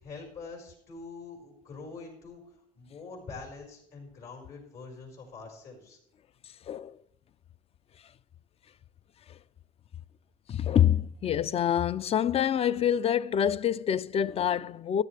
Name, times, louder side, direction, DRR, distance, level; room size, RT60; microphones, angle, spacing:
voice 1, 0.0-2.4 2.8-6.0, left 4 dB, 70° left, 5.1 m, -44 dB
voice 2, 6.7-7.0 10.5-15.0, left 9 dB, 35° left, 0.4 m, -26 dB
14.0 x 10.5 x 3.3 m
cardioid pair, 110°, 17 cm